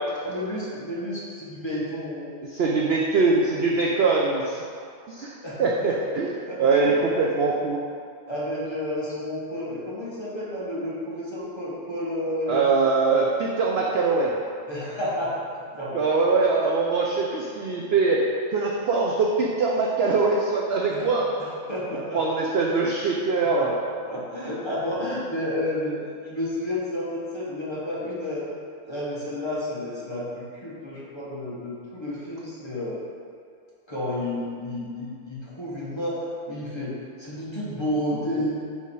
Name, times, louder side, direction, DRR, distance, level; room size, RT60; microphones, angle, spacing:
voice 1, 0.2-2.4 5.4-5.9 6.2-6.9 8.3-12.6 14.7-15.4 15.8-16.0 16.5-16.6 20.9-21.1 21.4-22.2 22.5-22.6 23.6-23.7 24.0-25.9 26.2-28.4 28.8-33.0 33.9-38.5, left 1 dB, 20° left, -8 dB, 1.2 m, -31 dB
voice 2, 2.5-4.6 5.1-5.3 5.6-7.8 12.5-14.3 15.9-18.3 18.5-21.3 22.1-23.8 38.3-38.4, right 4 dB, 60° right, -2 dB, 0.6 m, -22 dB
5.4 x 4.2 x 4.7 m, 2.3 s
omnidirectional pair, 1.5 m